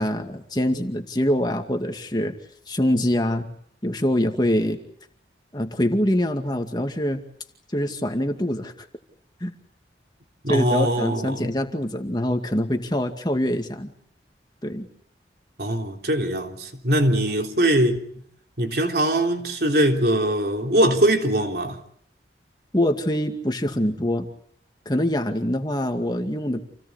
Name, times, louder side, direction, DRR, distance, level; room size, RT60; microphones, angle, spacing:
voice 1, 0.0-2.3 2.7-3.5 3.8-4.8 5.5-7.2 7.7-8.7 9.4-9.5 10.5-13.9 14.6-14.9 22.7-24.3 24.9-26.6, left 1 dB, 25° left, 2.2 m, -24 dB
voice 2, 10.4-11.5 15.6-18.2 18.6-21.8, right 1 dB, 60° right, 3.6 m, -22 dB
28.5 x 18.0 x 8.5 m
head